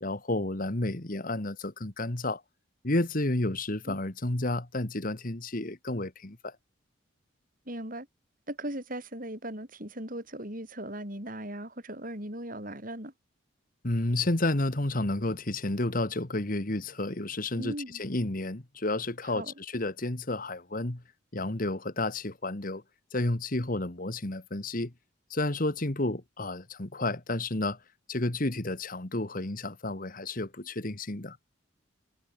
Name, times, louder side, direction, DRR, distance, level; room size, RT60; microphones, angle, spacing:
voice 1, 0.0-2.4 2.8-6.5 13.8-21.0 21.3-22.8 23.1-24.9 25.3-27.8 28.1-31.4, left 2 dB, 40° left, 1.7 m, -31 dB
voice 2, 7.7-8.1 8.5-13.1 17.6-18.0 19.2-19.5, right 1 dB, 40° right, 7.7 m, -38 dB
head